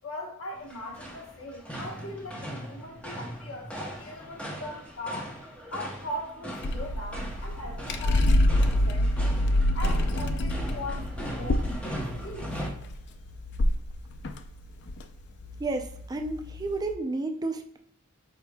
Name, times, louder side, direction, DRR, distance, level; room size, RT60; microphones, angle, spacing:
voice 1, 0.0-5.3 5.7-9.3 9.7-12.5, left 1 dB, 75° left, 1.1 m, -40 dB
sound 1, 0.5-12.7, equal, 5° left, 0.8 m, -39 dB
sound 2, 6.6-16.9, left 1 dB, 55° left, 0.4 m, -27 dB
voice 2, 15.6-17.8, right 2 dB, 20° right, 0.4 m, -31 dB
4.9 x 4.5 x 2.2 m
head